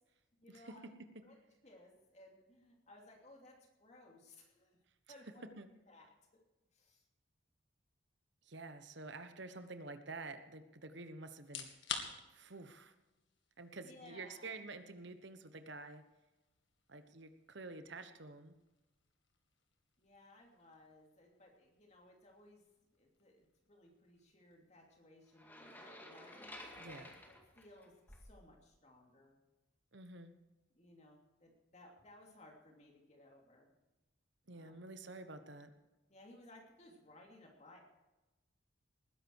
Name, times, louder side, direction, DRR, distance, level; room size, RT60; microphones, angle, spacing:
voice 1, 0.4-0.9 1.2-4.8 5.1-5.6 5.9-6.1 6.7-7.0 13.8-14.6 20.0-22.6 22.9-29.4 30.7-33.7 34.5-34.8 36.1-37.8, left 1 dB, 35° left, 1 dB, 2.9 m, -61 dB
voice 2, 8.4-11.7 12.3-12.9 13.6-16.0 16.9-18.5 26.8-27.1 29.9-30.3 34.5-35.7, right 3 dB, 60° right, 9 dB, 1.2 m, -49 dB
sound 1, 11.4-26.2, left 7 dB, 60° left, 2.0 m, -53 dB
sound 2, 25.4-28.4, left 1 dB, 10° left, 2.0 m, -53 dB
20.0 x 10.5 x 4.7 m, 1.1 s
head